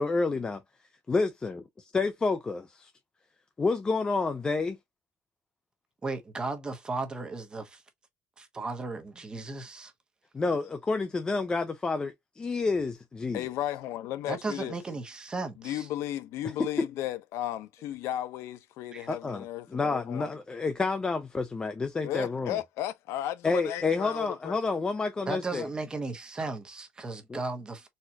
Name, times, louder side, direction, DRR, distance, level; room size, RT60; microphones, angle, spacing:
voice 1, 0.0-0.6 1.1-2.9 3.6-4.8 10.3-13.4 19.1-19.4 19.7-22.6 23.4-25.7 27.3-27.4, left 3 dB, 20° left, 0.4 m, -29 dB
voice 2, 6.0-7.8 8.4-9.9 14.3-15.9 18.9-19.1 25.3-27.9, right 3 dB, 20° right, 0.8 m, -35 dB
voice 3, 13.3-14.8 15.6-20.3 22.0-24.6, left 13 dB, 90° left, 0.5 m, -34 dB
4.2 x 2.4 x 2.7 m
cardioid pair, 160°, 5 cm